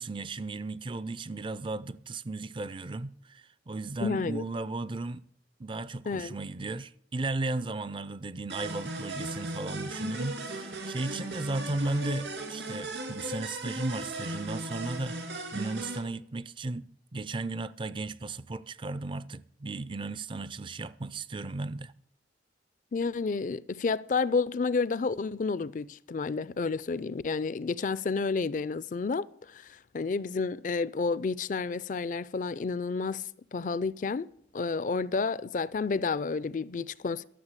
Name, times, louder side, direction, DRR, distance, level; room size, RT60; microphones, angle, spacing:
voice 1, 0.0-5.2 5.6-21.9, right 2 dB, 25° right, 0.4 m, -35 dB
voice 2, 4.0-4.4 6.1-6.3 11.1-11.2 22.9-34.3 34.5-37.2, left 4 dB, 45° left, 0.4 m, -30 dB
sound 1, 8.5-16.0, right 1 dB, 70° right, 2.7 m, -37 dB
13.0 x 6.9 x 8.2 m
head